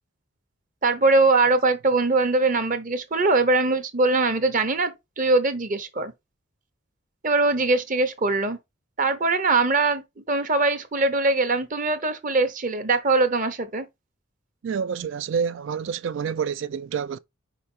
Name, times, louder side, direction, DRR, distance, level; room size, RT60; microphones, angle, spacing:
voice 1, 0.8-6.1 7.2-8.6 9.0-13.8, right 3 dB, 40° right, 0.9 m, -22 dB
voice 2, 14.6-17.2, right 6 dB, 60° right, 0.3 m, -28 dB
5.0 x 4.7 x 4.3 m
head